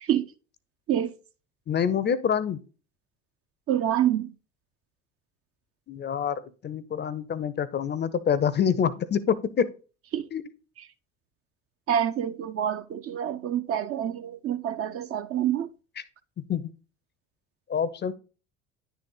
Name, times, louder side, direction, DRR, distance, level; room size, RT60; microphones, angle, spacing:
voice 1, 1.7-2.6 5.9-9.7 10.3-10.4 16.0-16.1 16.4-16.7 17.7-18.1, left 7 dB, 30° left, 0.6 m, -26 dB
voice 2, 3.7-4.3 10.1-10.3 11.9-15.7, right 10 dB, 40° right, 0.6 m, -27 dB
10.0 x 4.1 x 3.7 m
figure-of-eight pair, 60°, 37 cm